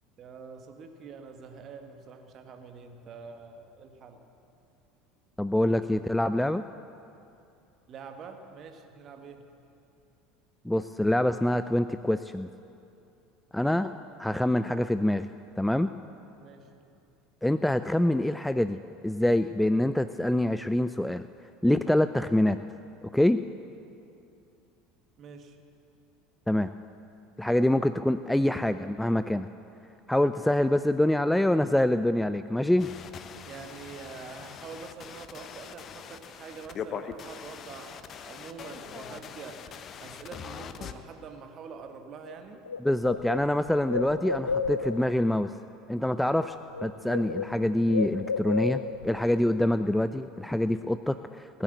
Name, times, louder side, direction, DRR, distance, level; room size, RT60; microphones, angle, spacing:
voice 1, 0.2-4.2 7.9-9.4 13.6-13.8 16.4-16.9 25.2-25.6 33.5-39.7 40.0-42.6, right 5 dB, 40° right, 5 dB, 1.4 m, -45 dB
voice 2, 5.4-6.6 10.7-12.5 13.5-13.9 14.2-15.3 15.6-15.9 17.4-21.3 21.6-22.6 23.1-23.4 26.5-26.7 27.4-29.5 30.1-32.9 42.8-45.5 45.9-46.5 46.8-51.6, left 1 dB, 5° left, 11 dB, 0.3 m, -25 dB
sound 1, 32.8-40.9, left 7 dB, 35° left, 0.7 m, -42 dB
Bird, 42.3-42.4 42.6-45.2 46.2-46.5 46.7-49.2, left 5 dB, 80° left, 0.4 m, -32 dB
17.5 x 7.7 x 8.2 m, 2.7 s
figure-of-eight pair, 70°, 0 cm